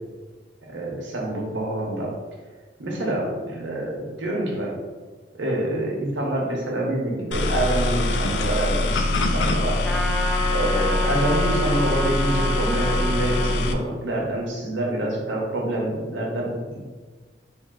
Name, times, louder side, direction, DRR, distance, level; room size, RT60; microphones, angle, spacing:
voice 1, 0.7-2.1 2.8-4.7 5.3-9.8 10.5-16.9, right 1 dB, 80° right, -3 dB, 0.9 m, -26 dB
sound 1, 7.3-13.7, left 2 dB, 70° left, 0.4 m, -24 dB
Trumpet, 9.8-13.5, left 1 dB, 5° left, 0.3 m, -28 dB
Wind instrument woodwind instrument, 10.9-14.4, right 1 dB, 40° right, 0.8 m, -43 dB
3.7 x 2.4 x 3.8 m, 1.4 s
head